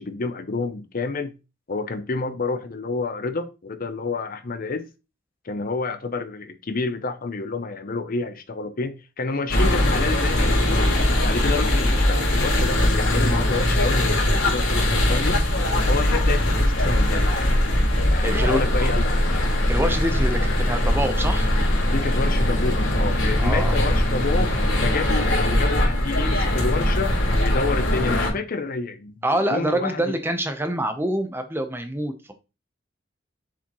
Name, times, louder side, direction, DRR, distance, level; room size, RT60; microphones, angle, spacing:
voice 1, 0.0-1.3 1.7-4.8 5.4-10.9 11.2-15.4 15.9-17.3 18.0-19.1 21.9-24.6 24.8-30.2, left 3 dB, 50° left, 0.7 m, -29 dB
sound 1, 9.5-28.3, left 1 dB, 80° left, 3.3 m, -21 dB
voice 2, 18.2-18.9 19.7-21.5 23.4-23.8 29.2-32.3, right 1 dB, 10° right, 0.9 m, -26 dB
7.0 x 5.0 x 3.1 m
head